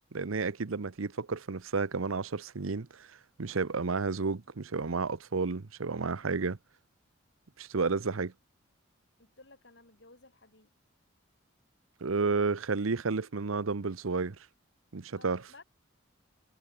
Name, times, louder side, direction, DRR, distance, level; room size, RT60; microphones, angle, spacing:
voice 1, 0.1-6.6 7.6-8.3 12.0-14.4 14.9-15.5, right 4 dB, 85° right, 0.8 m, -31 dB
voice 2, 9.2-10.7 15.2-15.6, left 3 dB, 60° left, 5.9 m, -56 dB
head